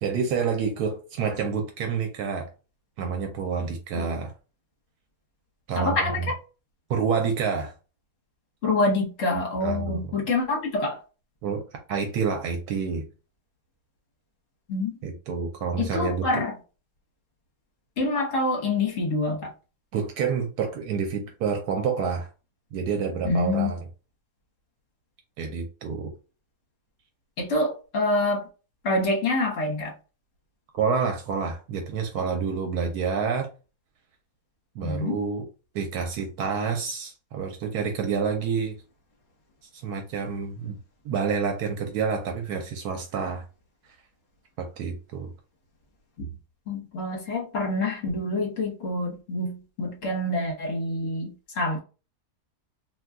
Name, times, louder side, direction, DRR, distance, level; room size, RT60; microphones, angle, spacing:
voice 1, 0.0-2.5 3.0-4.3 5.7-6.3 6.9-7.7 9.6-10.1 11.4-11.6 11.9-13.0 15.0-16.3 19.9-22.3 22.7-23.8 25.4-26.1 30.7-33.5 34.8-35.4 35.7-38.8 39.8-40.8 41.0-43.4 44.6-45.3, right 6 dB, 75° right, 1.1 m, -28 dB
voice 2, 5.8-6.3 8.6-11.0 14.7-14.9 15.8-16.5 18.0-19.5 23.2-23.7 27.4-28.4 28.8-29.9 34.8-35.2 46.7-51.8, left 2 dB, 55° left, 1.3 m, -26 dB
2.7 x 2.2 x 3.5 m
omnidirectional pair, 1.7 m